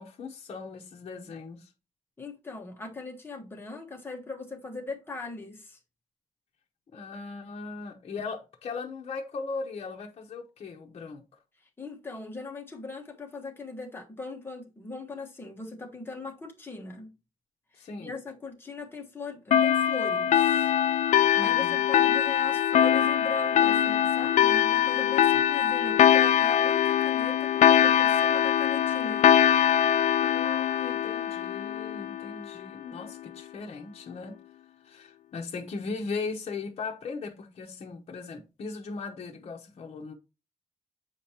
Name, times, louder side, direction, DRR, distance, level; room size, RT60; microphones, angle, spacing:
voice 1, 0.0-1.7 6.9-11.2 17.7-18.1 21.3-21.8 30.2-34.4 34.8-40.1, left 4 dB, 55° left, 0.9 m, -38 dB
voice 2, 2.2-5.8 11.8-17.1 17.7-20.7 21.4-29.3, left 3 dB, 20° left, 1.3 m, -40 dB
sound 1, 19.5-32.6, left 10 dB, 80° left, 0.4 m, -23 dB
7.9 x 5.0 x 2.8 m
wide cardioid pair, 155°, 12 cm